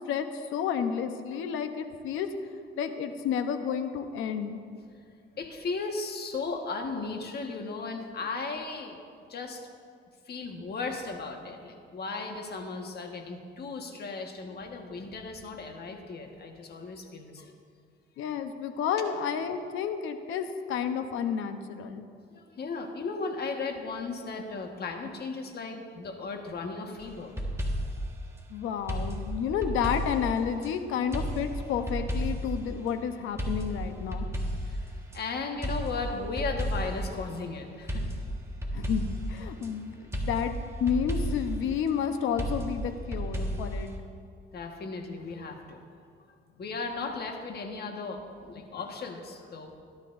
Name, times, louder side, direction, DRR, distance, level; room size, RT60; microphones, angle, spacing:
voice 1, 0.1-2.3 2.8-4.6 18.2-22.0 28.5-34.3 38.7-40.5 40.8-43.9, left 7 dB, 90° left, 7 dB, 0.8 m, -31 dB
voice 2, 5.4-8.9 9.3-9.7 10.3-17.5 22.3-27.3 34.6-38.0 44.5-45.8 46.6-49.8, left 4 dB, 55° left, 3 dB, 1.5 m, -36 dB
sound 1, 27.0-28.1 28.9-30.7 31.1-32.6 33.4-35.2 35.6-37.1 37.9-39.7 40.1-41.5 42.4-43.9, equal, 15° right, 1.5 m, -32 dB
17.5 x 11.5 x 2.6 m, 2.2 s
cardioid pair, 90°, 20 cm